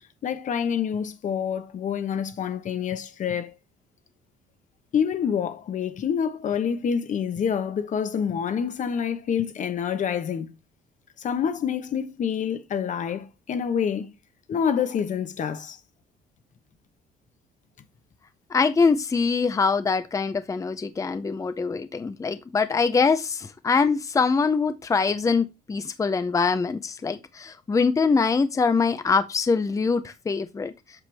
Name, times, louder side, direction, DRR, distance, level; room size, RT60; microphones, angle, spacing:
voice 1, 0.2-3.5 4.9-10.5 11.2-14.1 14.5-15.8, left 7 dB, 50° left, 1.1 m, -27 dB
voice 2, 18.5-30.7, left 4 dB, 20° left, 0.6 m, -23 dB
8.2 x 5.9 x 3.4 m
cardioid pair, 110°, 17 cm